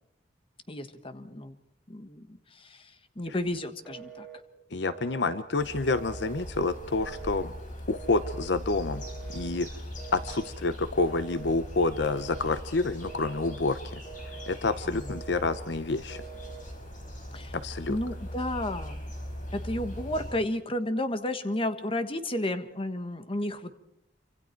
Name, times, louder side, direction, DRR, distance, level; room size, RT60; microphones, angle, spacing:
voice 1, 0.7-1.5 1.9-4.3 14.9-15.2 17.3-17.6 17.9-19.1 19.5-23.7, left 1 dB, 30° left, 9 dB, 1.4 m, -32 dB
Telephone, 3.9-4.4 4.9-5.4 5.9-6.5 6.9-7.5 7.9-8.5 9.0-9.5 10.0-10.5 11.0-11.6 12.0-12.6 13.0-13.6 14.0-14.6 15.1-15.6 16.1-16.7, right 8 dB, 5° left, 3.5 m, -46 dB
voice 2, 4.7-7.5 7.9-9.1 9.3-9.7 10.1-14.0 14.5-16.2 17.5-18.0, left 3 dB, 70° left, 12 dB, 0.8 m, -28 dB
sound 1, 5.6-20.3, equal, 45° left, 6.3 m, -40 dB
27.0 x 25.5 x 4.6 m, 0.78 s
head